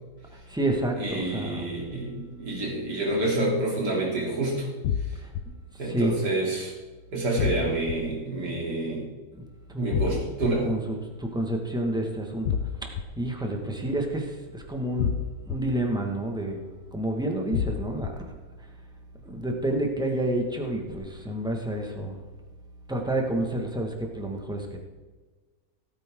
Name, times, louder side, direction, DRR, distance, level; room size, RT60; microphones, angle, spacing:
voice 1, 0.3-1.8 5.2-5.3 5.7-6.2 9.3-9.4 9.7-12.9 13.2-16.7 16.9-18.4 19.2-22.2 22.9-24.8, right 1 dB, ahead, 2 dB, 1.6 m, -29 dB
voice 2, 1.0-4.7 5.8-6.7 7.1-9.1 9.8-10.7, right 2 dB, 70° right, -3 dB, 3.7 m, -28 dB
sound 1, 4.8-5.4 7.4-8.0 9.9-10.5 12.4-13.0 15.0-15.6 17.5-18.1, left 8 dB, 80° left, 1.4 m, -27 dB
16.5 x 9.3 x 3.8 m, 1.3 s
omnidirectional pair, 1.9 m